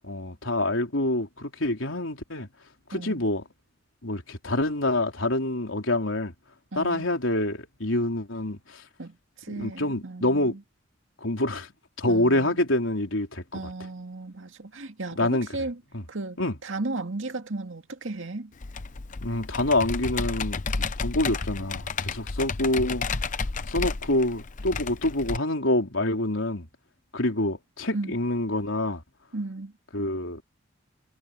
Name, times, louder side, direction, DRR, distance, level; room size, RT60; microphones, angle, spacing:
voice 1, 0.0-2.5 2.9-3.4 4.0-6.3 6.8-8.8 9.5-10.5 11.2-11.7 12.0-13.4 15.2-15.5 15.9-16.0 16.4-16.6 19.2-23.1 23.7-26.7 27.1-29.0 29.9-30.4, left 1 dB, 80° left, 3.7 m, -26 dB
voice 2, 2.9-3.2 6.7-7.1 9.0-10.6 12.1-12.6 13.5-15.8 16.1-18.5 27.9-28.2 29.3-29.7, right 2 dB, 80° right, 2.1 m, -35 dB
Computer keyboard, 18.6-25.4, left 4 dB, 40° left, 0.7 m, -32 dB
head